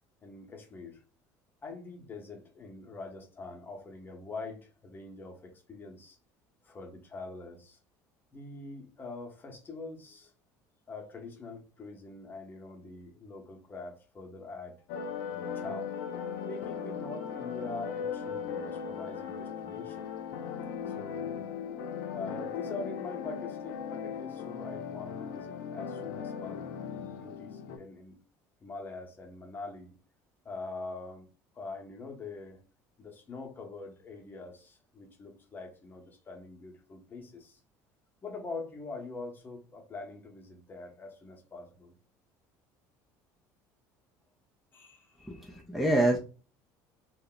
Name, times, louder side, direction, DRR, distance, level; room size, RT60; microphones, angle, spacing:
voice 1, 0.2-1.0 1.6-6.2 6.6-7.8 8.3-10.3 10.9-14.8 15.3-15.9 16.4-20.1 20.9-21.4 22.1-28.2 28.6-29.9 30.4-31.3 31.5-32.6 33.0-37.6 38.2-41.9 44.7-45.3, left 3 dB, 25° left, 0.8 m, -44 dB
sound 1, 14.9-27.8, left 7 dB, 80° left, 0.5 m, -38 dB
voice 2, 45.2-46.2, right 1 dB, ahead, 0.4 m, -26 dB
2.2 x 2.0 x 3.8 m
cardioid pair, 120°, 8 cm